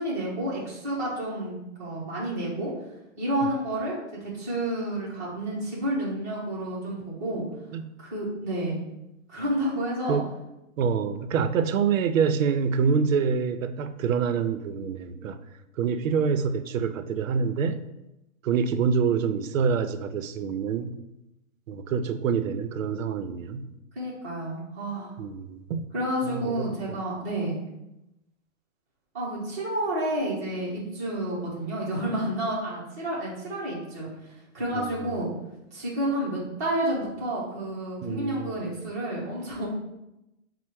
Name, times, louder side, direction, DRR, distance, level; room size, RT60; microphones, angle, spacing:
voice 1, 0.0-2.7 3.2-7.5 8.0-8.8 9.3-10.2 23.9-25.2 25.9-27.6 29.1-35.3 35.7-39.7, right 1 dB, 15° right, -7 dB, 0.5 m, -30 dB
voice 2, 10.8-15.4 15.8-17.8 18.4-21.0 21.7-23.7 25.2-25.9 26.2-27.0 34.7-35.1 38.0-38.6, right 6 dB, 75° right, 10 dB, 0.5 m, -26 dB
4.5 x 2.0 x 4.5 m, 0.91 s
hypercardioid pair, 170°, 40 cm